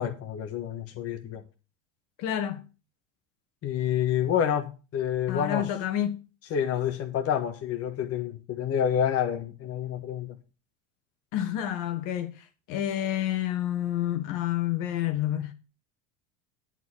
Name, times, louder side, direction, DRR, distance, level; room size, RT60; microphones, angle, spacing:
voice 1, 0.0-1.4 3.6-5.7 6.5-10.4, left 9 dB, 40° left, 1.3 m, -28 dB
voice 2, 2.2-2.6 5.3-6.2 11.3-12.3 12.7-15.5, left 11 dB, 55° left, 1.4 m, -29 dB
9.2 x 4.3 x 7.5 m
hypercardioid pair, 85°, 38 cm